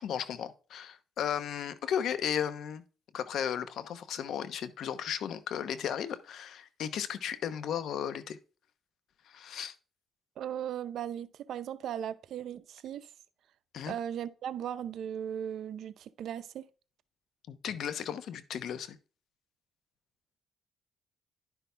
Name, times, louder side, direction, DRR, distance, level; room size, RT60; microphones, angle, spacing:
voice 1, 0.0-2.8 3.1-8.4 9.3-9.7 13.7-13.9 17.5-19.0, left 9 dB, 70° left, 0.9 m, -35 dB
voice 2, 10.4-13.1 13.9-16.7, right 9 dB, 75° right, 0.6 m, -37 dB
11.0 x 5.8 x 3.4 m
cardioid pair, 90°, 0 cm